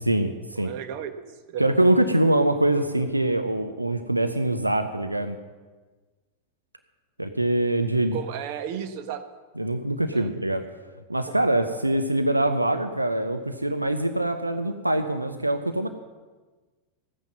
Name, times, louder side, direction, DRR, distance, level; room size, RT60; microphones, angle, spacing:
voice 1, 0.0-0.7 1.6-5.4 7.2-8.2 9.6-10.6 11.1-15.9, right 1 dB, 85° right, 8 dB, 0.8 m, -24 dB
voice 2, 0.5-1.7 8.1-9.2 10.1-10.3 11.3-11.4, right 8 dB, 45° right, 8 dB, 1.1 m, -34 dB
15.0 x 9.5 x 6.0 m, 1.3 s
figure-of-eight pair, 90°, 0 cm